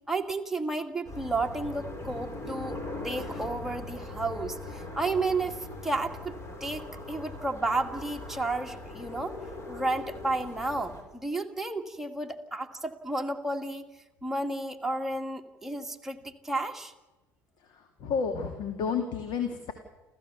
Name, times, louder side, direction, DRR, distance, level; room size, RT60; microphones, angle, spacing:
voice 1, 0.1-2.8 3.0-6.3 6.6-9.3 9.7-13.8 14.2-16.9, right 2 dB, 5° right, 3 dB, 2.2 m, -32 dB
sound 1, 1.0-11.0, left 2 dB, 30° left, 5.1 m, -40 dB
voice 2, 17.6-19.7, left 6 dB, 50° left, 6 dB, 2.5 m, -31 dB
29.5 x 14.0 x 7.1 m, 1.1 s
figure-of-eight pair, 65°, 10 cm